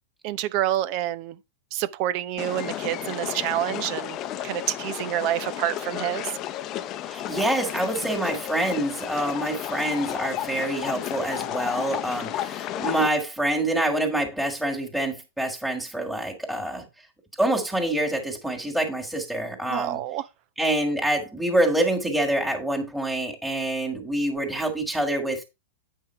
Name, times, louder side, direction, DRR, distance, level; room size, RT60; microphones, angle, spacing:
voice 1, 0.2-1.4 1.7-4.2 4.4-6.3 19.7-20.2, right 13 dB, 45° right, 0.7 m, -27 dB
sound 1, 2.4-13.1, left 12 dB, 35° left, 0.7 m, -32 dB
voice 2, 7.0-16.9 17.4-20.0 20.6-25.4, right 1 dB, ahead, 2.2 m, -26 dB
9.1 x 5.6 x 4.4 m
hypercardioid pair, 130°, 0 cm